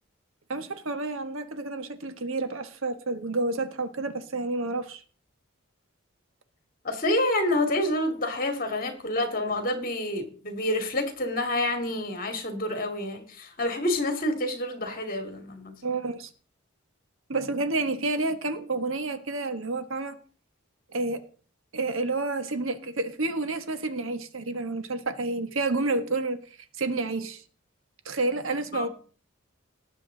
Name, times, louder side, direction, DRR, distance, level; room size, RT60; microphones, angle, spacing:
voice 1, 0.5-5.0 15.8-16.3 17.3-20.2 20.9-21.2 21.7-26.4 26.8-27.4 28.0-28.9, right 3 dB, 75° right, 10 dB, 1.3 m, -29 dB
voice 2, 6.8-15.7 28.7-28.9, left 1 dB, 40° left, 6 dB, 2.3 m, -28 dB
18.5 x 7.2 x 3.9 m, 0.42 s
head